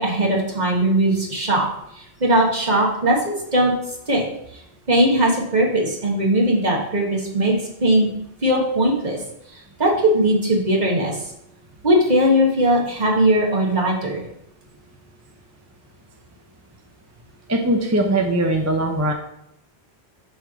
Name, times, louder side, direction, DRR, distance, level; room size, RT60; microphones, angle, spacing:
voice 1, 0.0-1.7 2.2-3.7 4.1-4.2 4.9-7.5 7.8-8.1 8.4-9.2 9.8-11.2 11.8-14.2, right 1 dB, 40° right, -2 dB, 1.6 m, -19 dB
voice 2, 17.5-19.1, right 1 dB, 20° right, 2 dB, 0.5 m, -20 dB
7.0 x 3.5 x 6.1 m, 0.79 s
omnidirectional pair, 1.1 m